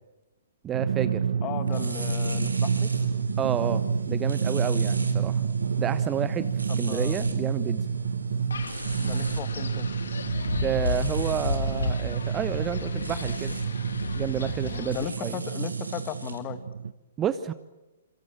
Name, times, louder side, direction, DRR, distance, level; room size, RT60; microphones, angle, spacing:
voice 1, 0.6-1.2 3.4-5.4 5.8-6.5 6.8-7.8 10.6-13.6 14.2-15.4 17.2-17.5, right 9 dB, 20° right, 13 dB, 1.1 m, -30 dB
Drum, 0.7-16.9, right 7 dB, 60° right, 1.1 m, -30 dB
voice 2, 1.4-2.9 6.7-7.1 9.0-9.9 14.7-16.6, left 11 dB, 25° left, 11 dB, 2.2 m, -36 dB
sound 1, 1.7-16.4, right 2 dB, 80° right, 4.3 m, -33 dB
Wind, 8.5-15.1, left 4 dB, 65° left, 3.0 m, -33 dB
29.0 x 27.0 x 7.6 m, 0.99 s
figure-of-eight pair, 120°, 0 cm